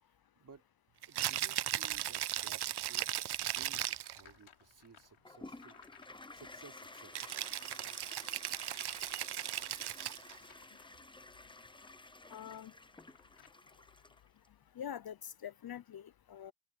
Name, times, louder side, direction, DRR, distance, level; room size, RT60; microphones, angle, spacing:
voice 1, 0.3-0.7 1.1-3.1 3.4-5.8 6.1-7.2 10.5-10.7, right 5 dB, 40° right, 4.3 m, -58 dB
Rattle (instrument), 1.0-4.2 7.1-10.4, right 12 dB, 60° right, 0.5 m, -37 dB
sound 1, 2.5-13.5, left 8 dB, 85° left, 3.7 m, -65 dB
Toilet flush, 5.3-14.5, left 2 dB, 10° left, 0.7 m, -53 dB
voice 2, 12.3-12.7 14.8-16.5, left 9 dB, 50° left, 0.6 m, -45 dB
open air
wide cardioid pair, 180°, 47 cm